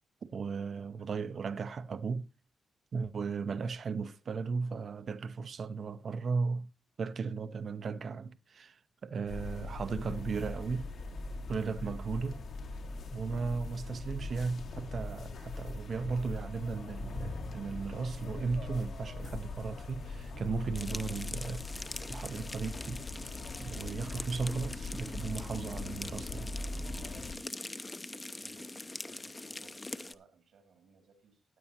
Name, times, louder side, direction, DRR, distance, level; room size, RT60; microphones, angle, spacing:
voice 1, 0.3-2.3 2.9-6.7 7.0-10.9 11.5-12.4 13.1-21.6 22.1-23.0 23.6-26.5, right 5 dB, 50° right, 0.6 m, -36 dB
sound 1, 9.3-27.3, left 3 dB, 70° left, 1.6 m, -41 dB
sound 2, 20.8-30.1, left 2 dB, 20° left, 0.6 m, -43 dB
voice 2, 28.4-31.4, right 4 dB, 80° right, 2.3 m, -62 dB
16.0 x 9.8 x 2.8 m
wide cardioid pair, 130°, 0 cm